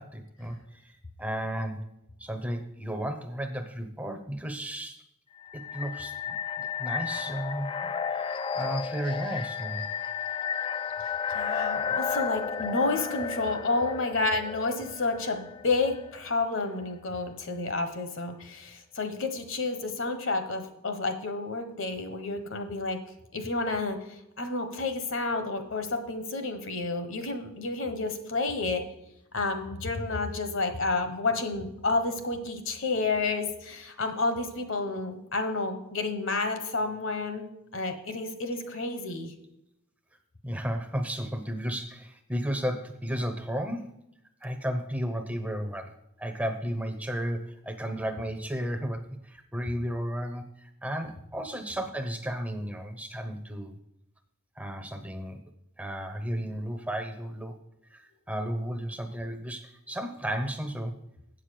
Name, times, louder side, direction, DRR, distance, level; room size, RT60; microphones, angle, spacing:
voice 1, 0.0-1.9 2.2-5.0 5.5-9.8 40.4-43.9 44.4-53.8 54.6-55.4 55.8-57.6 57.9-61.0, equal, 5° right, 6 dB, 0.7 m, -34 dB
sound 1, 5.4-16.2, left 7 dB, 25° left, 0.3 m, -33 dB
voice 2, 11.3-23.0 23.3-24.0 24.4-28.8 29.3-37.5 37.7-39.3, left 3 dB, 60° left, 8 dB, 1.3 m, -30 dB
8.0 x 7.5 x 6.6 m, 0.81 s
head